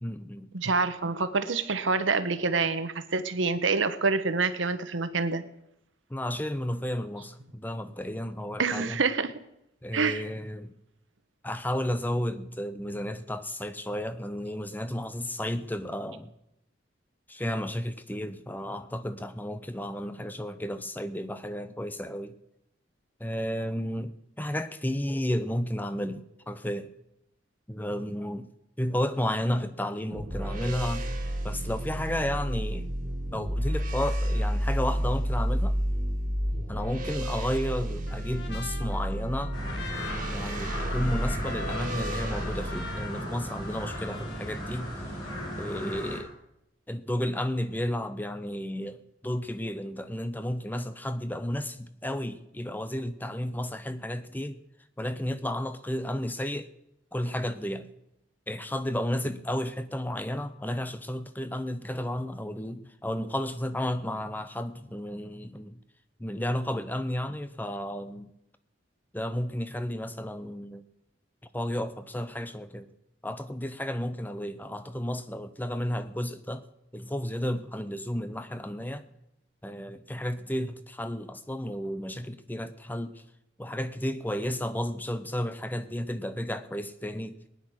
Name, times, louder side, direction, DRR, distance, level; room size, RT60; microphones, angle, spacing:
voice 1, 0.0-0.5 6.1-9.0 9.8-10.8 11.4-16.3 17.3-22.4 23.2-26.9 27.7-28.5 28.8-31.1 31.4-32.9 33.3-35.8 36.7-39.5 40.3-45.0 45.6-46.3 46.9-54.6 55.0-56.7 57.1-57.9 58.5-65.8 66.2-68.3 69.1-70.8 71.5-72.9 73.2-76.7 76.9-79.1 79.6-83.2 83.6-87.4, equal, 10° left, 0.7 m, -32 dB
voice 2, 0.5-5.4 8.6-9.3 9.9-10.3, right 4 dB, 85° right, 1.1 m, -27 dB
sound 1, 30.1-42.9, equal, 45° right, 1.9 m, -31 dB
Trumpet, 38.1-44.8, left 3 dB, 60° left, 1.3 m, -43 dB
sound 2, 39.5-46.2, equal, 25° left, 8.0 m, -36 dB
19.0 x 9.8 x 6.4 m
head